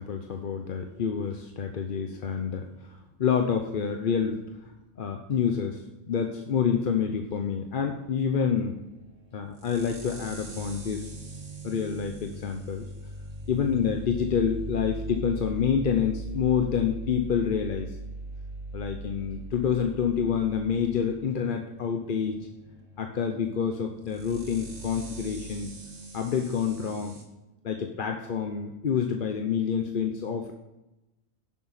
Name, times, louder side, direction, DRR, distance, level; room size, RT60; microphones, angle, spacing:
voice 1, 0.0-4.4 5.0-8.7 9.3-11.1 11.6-12.9 13.5-18.0 18.7-22.5 23.0-25.7 26.1-27.2 27.6-30.5, left 7 dB, 50° left, 4 dB, 0.8 m, -28 dB
sound 1, 7.9-27.2, right 2 dB, 70° right, 2.2 m, -41 dB
10.5 x 7.4 x 4.1 m, 0.97 s
omnidirectional pair, 1.3 m